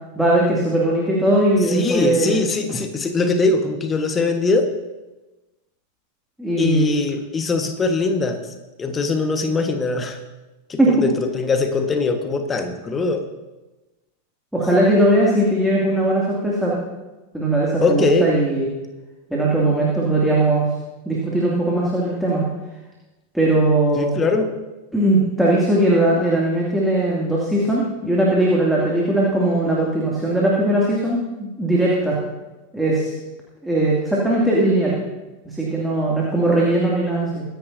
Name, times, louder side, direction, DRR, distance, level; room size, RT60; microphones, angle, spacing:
voice 1, 0.1-2.4 6.4-6.9 10.8-10.9 14.5-16.7 17.3-18.7 19.3-20.7 21.1-22.5 23.3-24.2 24.9-32.2 32.7-33.1 33.6-35.0 35.4-37.4, right 1 dB, 5° right, -5 dB, 2.5 m, -19 dB
voice 2, 1.7-4.7 6.6-8.5 8.8-10.2 10.7-13.2 17.8-18.3 23.9-24.5, left 3 dB, 20° left, 6 dB, 1.4 m, -21 dB
23.0 x 10.5 x 2.7 m, 1.1 s
figure-of-eight pair, 90°, 0 cm